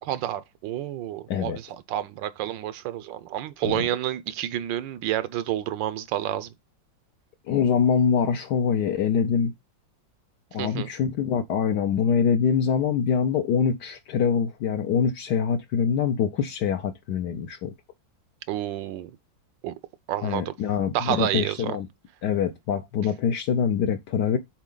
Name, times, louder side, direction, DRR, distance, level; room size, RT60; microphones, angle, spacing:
voice 1, 0.0-6.5 10.6-10.9 18.5-19.1 19.6-19.7 20.1-20.5 20.9-21.8, right 12 dB, 80° right, 1.3 m, -29 dB
voice 2, 1.3-1.6 3.6-3.9 7.5-9.5 10.5-17.7 20.2-21.9 22.2-24.4, left 7 dB, 70° left, 1.2 m, -24 dB
7.3 x 3.8 x 3.8 m
omnidirectional pair, 2.0 m